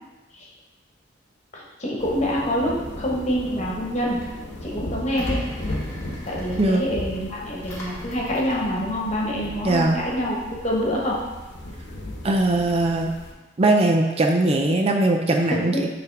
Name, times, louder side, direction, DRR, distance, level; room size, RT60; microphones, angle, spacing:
voice 1, 1.5-4.2 4.6-5.4 6.3-11.2 15.5-15.9, equal, 35° left, -3 dB, 1.3 m, -26 dB
sound 1, 2.0-13.3, left 1 dB, 60° left, 1.0 m, -36 dB
Engine, 3.9-9.8, equal, 15° left, 1.2 m, -43 dB
voice 2, 9.6-10.0 12.2-13.1 13.6-15.9, right 2 dB, 30° right, 2 dB, 0.4 m, -20 dB
6.9 x 3.3 x 4.7 m, 1.2 s
head